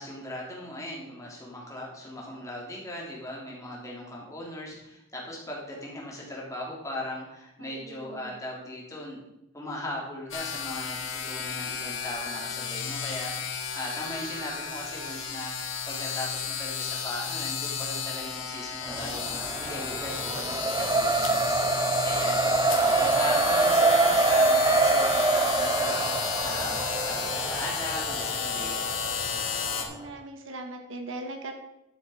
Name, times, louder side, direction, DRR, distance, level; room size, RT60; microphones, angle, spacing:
voice 1, 0.0-21.4 22.0-22.4 22.8-26.0 26.4-26.8 27.1-28.8, left 1 dB, 15° left, -3 dB, 3.3 m, -38 dB
voice 2, 7.6-8.3 29.7-31.5, right 2 dB, 80° right, 4 dB, 1.6 m, -40 dB
sound 1, 10.3-29.8, left 6 dB, 80° left, 1.7 m, -32 dB
Race car auto racing, 18.9-29.9, right 3 dB, 20° right, 0.5 m, -26 dB
11.5 x 7.3 x 5.1 m, 0.87 s
head